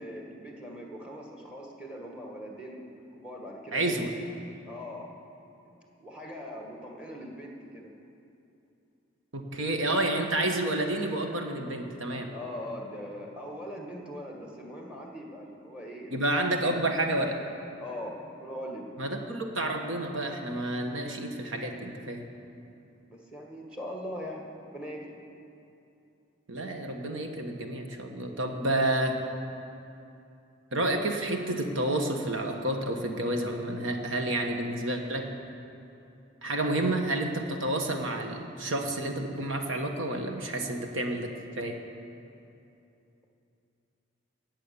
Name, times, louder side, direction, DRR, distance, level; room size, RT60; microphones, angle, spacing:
voice 1, 0.0-4.0 4.7-5.1 6.0-7.9 12.3-16.2 17.8-18.9 23.1-25.2, equal, 5° right, 0 dB, 1.7 m, -41 dB
voice 2, 3.7-4.1 9.3-12.3 16.1-17.4 19.0-22.3 26.5-29.2 30.7-35.3 36.4-41.8, right 1 dB, 65° right, 3 dB, 1.4 m, -30 dB
18.5 x 7.5 x 7.1 m, 2.8 s
head